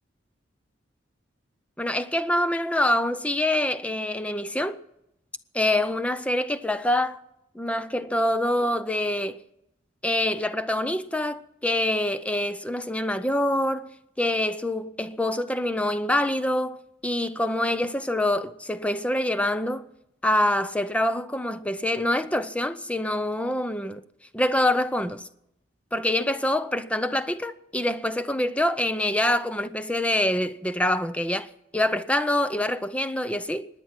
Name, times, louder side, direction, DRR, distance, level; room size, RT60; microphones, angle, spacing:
voice 1, 1.8-4.8 5.5-7.2 7.5-9.4 10.0-19.9 20.2-24.0 24.3-25.3 25.9-33.7, left 1 dB, 5° left, 0.5 m, -25 dB
23.5 x 9.6 x 5.9 m
head